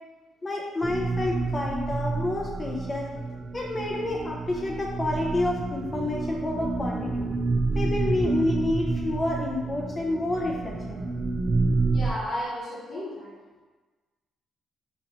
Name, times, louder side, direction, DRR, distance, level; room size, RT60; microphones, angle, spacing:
voice 1, 0.4-3.1 3.5-7.3 7.7-11.0, left 2 dB, 30° left, -1 dB, 0.4 m, -29 dB
sound 1, 0.8-12.1, right 3 dB, 45° right, 0.4 m, -29 dB
voice 2, 11.9-13.3, equal, 60° left, -8 dB, 1.0 m, -33 dB
4.1 x 2.8 x 2.9 m, 1.3 s
cardioid pair, 90°, 0 cm